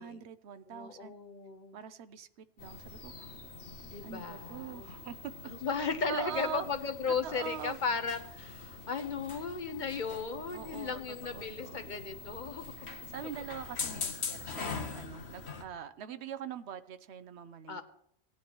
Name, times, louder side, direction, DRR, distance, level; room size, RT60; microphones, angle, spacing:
voice 1, 0.0-1.1 1.7-2.3 2.6-3.3 4.0-5.3 6.1-6.7 7.2-7.8 10.5-11.9 12.8-17.8, right 8 dB, 80° right, 12 dB, 1.0 m, -43 dB
voice 2, 0.7-1.8 3.9-4.9 5.4-12.7 17.7-17.8, left 5 dB, 50° left, 7 dB, 1.0 m, -36 dB
sound 1, 2.6-15.6, left 4 dB, 80° left, 1.3 m, -43 dB
18.0 x 10.0 x 3.1 m, 0.71 s
omnidirectional pair, 1.1 m